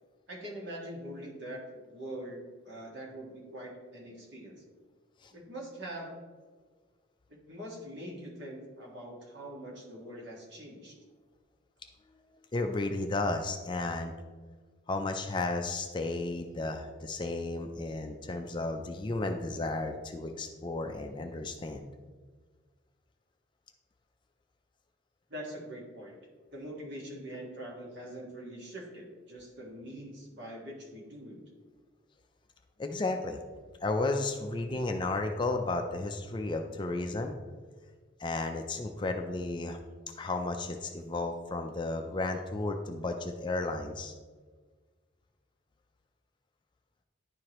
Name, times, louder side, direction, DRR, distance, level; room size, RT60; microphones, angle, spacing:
voice 1, 0.3-1.6 1.9-4.5 5.3-6.2 7.3-11.0 25.3-26.2 26.5-31.4, right 1 dB, 55° right, -2 dB, 1.6 m, -43 dB
voice 2, 12.5-14.1 14.9-21.9 32.8-33.4 33.8-37.3 38.2-39.8 40.2-44.1, left 2 dB, 20° left, 5 dB, 0.4 m, -33 dB
10.5 x 4.7 x 2.9 m, 1.4 s
head